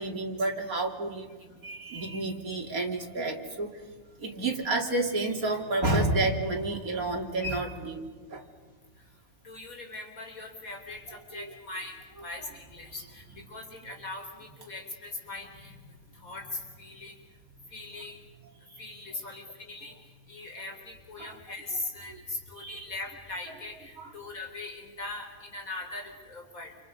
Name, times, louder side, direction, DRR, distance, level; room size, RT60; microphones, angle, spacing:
voice 1, 0.0-3.7 4.2-8.0 8.3-8.4 11.3-11.4 21.2-21.3 22.1-22.2 22.6-22.9, right 2 dB, 90° right, 1 dB, 3.5 m, -30 dB
voice 2, 9.4-15.8 16.1-17.2 17.7-18.2 18.8-20.0 20.3-26.8, left 2 dB, 75° left, 3 dB, 4.6 m, -40 dB
29.0 x 29.0 x 5.4 m, 1.5 s
omnidirectional pair, 1.5 m